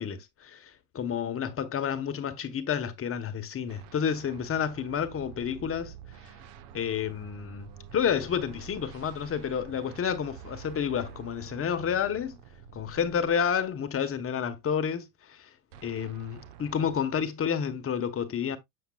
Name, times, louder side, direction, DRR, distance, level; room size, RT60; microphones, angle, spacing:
voice 1, 0.0-5.9 6.7-12.4 12.7-15.5 15.8-18.6, left 7 dB, 30° left, 1.1 m, -30 dB
sound 1, 3.7-13.9 15.7-17.0, right 8 dB, 70° right, 1.1 m, -48 dB
7.3 x 6.5 x 2.3 m
supercardioid pair, 110°, 45 cm